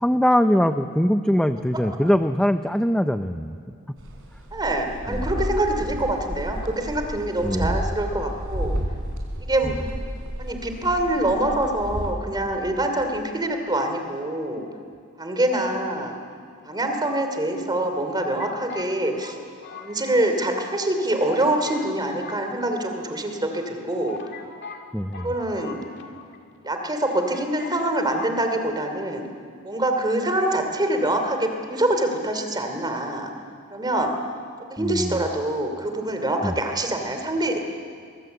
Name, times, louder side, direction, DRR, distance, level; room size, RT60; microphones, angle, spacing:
voice 1, 0.0-3.5 7.4-7.8 24.9-25.3 34.8-35.1 36.4-36.5, equal, 5° left, 8 dB, 0.6 m, -22 dB
sound 1, 4.0-12.1, equal, 70° right, 4.3 m, -31 dB
voice 2, 4.5-8.8 9.4-9.9 10.4-14.6 15.2-16.2 16.6-19.4 19.8-24.2 25.2-25.8 26.6-29.3 29.6-33.3 33.7-34.1 34.7-37.6, right 1 dB, 20° right, 5 dB, 2.9 m, -25 dB
sound 2, 16.7-17.5 18.1-20.4 20.7-20.8 21.1-21.9 22.2-23.2 23.7-23.8 24.1-26.4 26.6-26.7 27.0-27.8 28.1-28.3, left 4 dB, 55° left, 2.2 m, -42 dB
24.5 x 21.5 x 8.1 m, 2.3 s
head